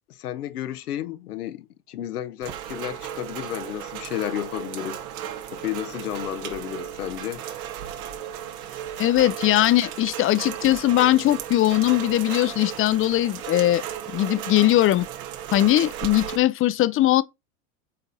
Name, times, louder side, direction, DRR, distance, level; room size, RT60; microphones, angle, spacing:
voice 1, 0.1-5.0 5.5-7.4, left 12 dB, 90° left, 1.0 m, -32 dB
Rain, 2.4-16.4, right 10 dB, 70° right, 1.6 m, -35 dB
voice 2, 9.0-13.8 14.1-15.1 15.5-17.2, left 14 dB, 30° left, 0.6 m, -20 dB
9.1 x 4.1 x 4.1 m
hypercardioid pair, 100°, 44 cm